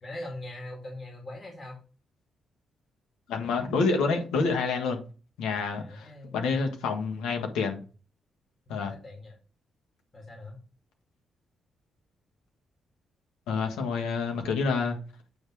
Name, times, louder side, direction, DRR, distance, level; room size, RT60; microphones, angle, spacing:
voice 1, 0.0-1.8 5.7-6.4 8.7-9.3 10.1-10.6, left 1 dB, 40° left, 2.9 m, -41 dB
voice 2, 3.3-5.0 5.4-7.8 8.7-8.9 13.5-15.0, left 4 dB, 85° left, 1.5 m, -28 dB
8.7 x 3.6 x 4.8 m
supercardioid pair, 65°, 0 cm